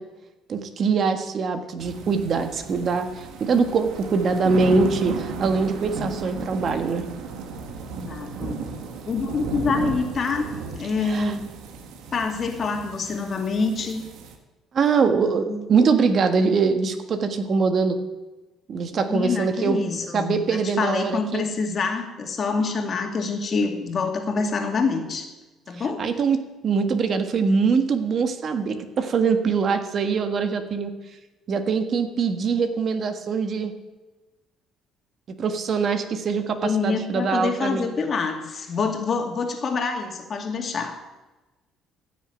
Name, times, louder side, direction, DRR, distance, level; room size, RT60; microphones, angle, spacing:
voice 1, 0.5-7.0 11.0-11.3 14.7-18.0 18.7-19.8 20.1-21.4 26.0-26.4 26.6-30.9 31.5-33.7 35.4-37.8, right 5 dB, 45° right, 8 dB, 1.5 m, -23 dB
sound 1, 1.8-14.3, right 5 dB, 80° right, 1.9 m, -35 dB
voice 2, 8.1-8.6 9.1-11.4 12.1-14.0 15.5-15.6 19.1-25.3 25.7-26.1 36.6-41.0, left 4 dB, 40° left, 4 dB, 2.4 m, -26 dB
15.5 x 7.0 x 9.1 m, 1.1 s
cardioid pair, 105°, 0 cm